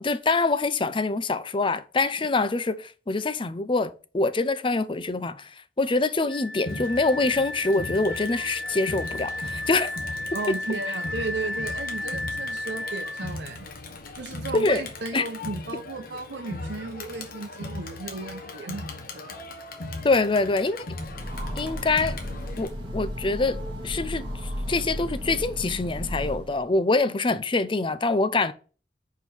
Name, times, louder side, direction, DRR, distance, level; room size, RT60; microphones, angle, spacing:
voice 1, 0.0-5.5 5.8-9.9 10.5-10.6 14.5-14.8 15.1-15.2 20.0-20.9 21.6-22.2 22.6-28.5, left 3 dB, 30° left, 0.5 m, -25 dB
Wind instrument woodwind instrument, 6.3-13.3, left 1 dB, 80° left, 2.0 m, -33 dB
Crowd, 6.7-22.7, left 2 dB, 55° left, 1.3 m, -38 dB
voice 2, 10.3-13.7 14.1-19.3, right 3 dB, 85° right, 0.8 m, -35 dB
Train, 20.9-26.7, equal, 30° right, 2.6 m, -34 dB
5.3 x 4.6 x 6.2 m
head